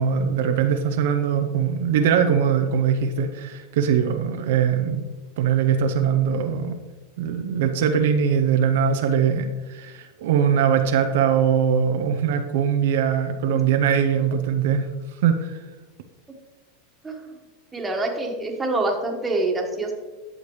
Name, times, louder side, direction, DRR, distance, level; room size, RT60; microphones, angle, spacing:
voice 1, 0.0-5.1 5.4-6.8 7.2-14.9 15.2-15.6, right 7 dB, 75° right, 5 dB, 0.6 m, -21 dB
voice 2, 17.7-19.9, right 2 dB, 15° right, 1 dB, 1.6 m, -25 dB
11.0 x 6.5 x 3.2 m, 1.3 s
hypercardioid pair, 110°, 0 cm